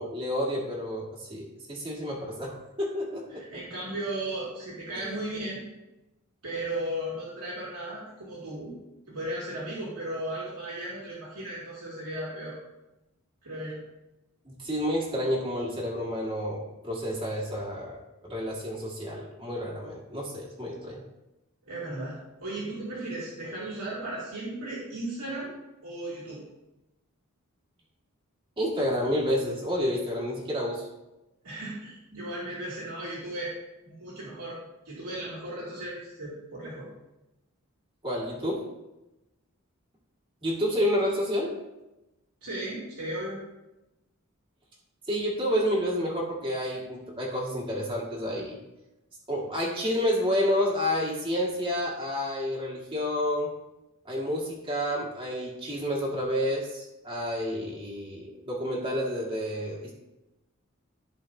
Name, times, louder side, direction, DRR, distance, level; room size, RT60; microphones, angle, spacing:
voice 1, 0.0-3.4 5.0-5.2 14.5-21.0 28.6-30.9 38.0-38.7 40.4-41.5 45.1-48.6 49.3-53.5 54.1-60.0, equal, 25° right, -4 dB, 1.8 m, -30 dB
voice 2, 3.3-5.6 6.4-8.8 9.1-12.6 13.4-13.8 21.6-25.5 25.8-26.4 31.4-33.5 33.9-34.6 34.8-36.9 42.4-43.4, right 1 dB, 90° right, -7 dB, 2.6 m, -36 dB
14.0 x 5.0 x 2.7 m, 0.97 s
head